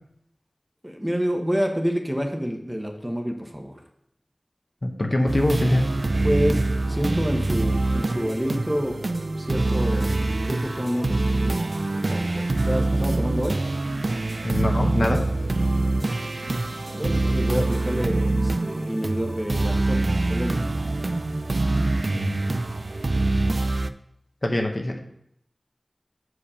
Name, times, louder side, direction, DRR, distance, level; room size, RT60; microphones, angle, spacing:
voice 1, 0.8-3.8 6.2-9.0 9.4-10.1 10.4-11.7 12.1-13.6 16.9-20.7, equal, 10° right, 3 dB, 1.0 m, -28 dB
voice 2, 4.8-5.9 14.4-15.3 22.1-22.4 24.4-25.0, left 1 dB, 45° left, 3 dB, 1.0 m, -23 dB
sound 1, 5.3-23.9, right 2 dB, 70° right, 0.4 m, -25 dB
sound 2, 5.9-18.1, right 1 dB, 45° right, 1.2 m, -43 dB
7.2 x 4.9 x 4.9 m, 0.74 s
wide cardioid pair, 55°, 0 cm